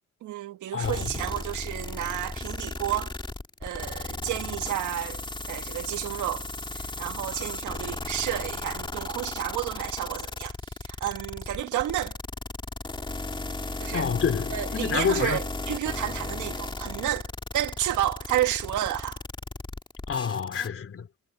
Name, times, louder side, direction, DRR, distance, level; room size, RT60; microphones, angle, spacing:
voice 1, 0.2-3.1 3.6-6.5 6.8-10.5 11.0-12.2 13.8-14.1 14.5-17.3 17.5-19.2, right 13 dB, 80° right, 1.8 m, -31 dB
sound 1, 0.8-20.7, left 2 dB, 15° left, 2.3 m, -35 dB
voice 2, 13.9-15.4 20.1-21.1, left 7 dB, 45° left, 3.6 m, -28 dB
cardioid pair, 90°, 30 cm